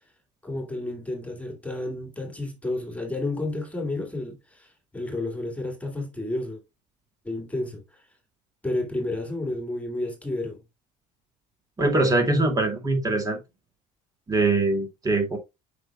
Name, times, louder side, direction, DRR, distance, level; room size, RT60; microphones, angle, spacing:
voice 1, 0.4-6.6 7.2-7.8 8.6-10.6, left 2 dB, 10° left, 2.1 m, -31 dB
voice 2, 11.8-13.4 14.3-15.4, right 2 dB, 25° right, 2.3 m, -22 dB
7.8 x 5.8 x 2.3 m
supercardioid pair, 100°, 16 cm